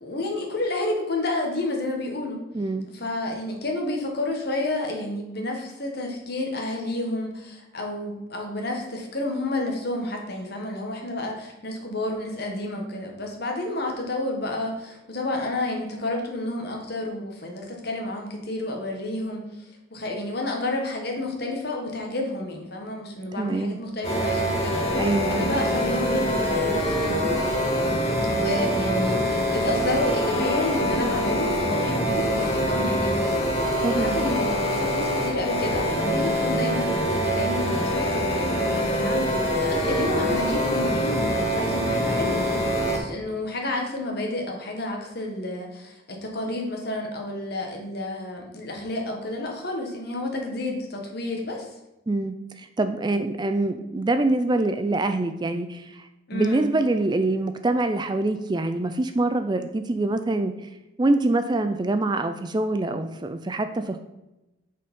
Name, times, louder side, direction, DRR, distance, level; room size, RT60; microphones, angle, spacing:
voice 1, 0.0-2.4 2.9-19.5 19.9-27.3 28.3-33.5 33.9-51.7 56.3-56.7, left 2 dB, 50° left, 1 dB, 1.5 m, -30 dB
voice 2, 2.5-2.9 23.4-23.8 24.9-25.5 33.7-34.2 52.1-60.7 61.0-64.0, right 2 dB, 20° right, 9 dB, 0.3 m, -25 dB
sound 1, 24.0-43.0, equal, 30° left, 1.6 m, -24 dB
6.6 x 5.5 x 5.3 m, 0.96 s
head